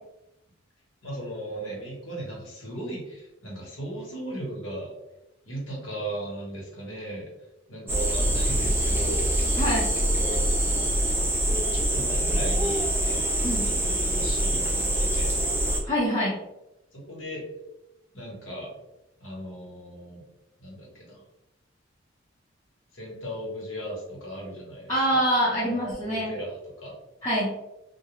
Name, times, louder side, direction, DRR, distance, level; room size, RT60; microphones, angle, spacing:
voice 1, 1.0-4.9 5.4-7.3 7.7-9.6 10.0-10.4 11.4-15.4 16.9-17.5 18.1-18.7 19.2-20.2 20.6-21.2 22.9-25.2 25.7-26.9, right 1 dB, 80° left, -3 dB, 1.1 m, -37 dB
sound 1, 7.9-15.8, right 1 dB, 10° right, 0.5 m, -25 dB
voice 2, 9.6-9.9 13.4-13.7 15.8-16.4 24.9-26.3 27.2-27.5, equal, 20° left, -11 dB, 0.8 m, -25 dB
2.3 x 2.2 x 2.9 m, 0.90 s
head